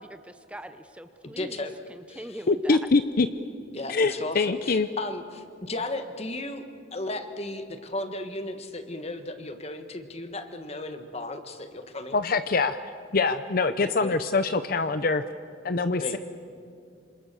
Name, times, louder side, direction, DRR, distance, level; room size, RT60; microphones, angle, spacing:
voice 1, 0.0-2.8, right 1 dB, 5° right, 9 dB, 0.7 m, -42 dB
voice 2, 1.4-1.7 2.1-2.4 3.7-6.6 6.9-12.2 13.8-14.2 16.0-16.2, left 2 dB, 35° left, 8 dB, 1.5 m, -35 dB
voice 3, 2.5-3.3 3.9-4.9 12.1-12.8 13.1-15.2 15.6-16.2, left 3 dB, 50° left, 11 dB, 0.6 m, -24 dB
27.0 x 26.5 x 6.9 m, 2.4 s
head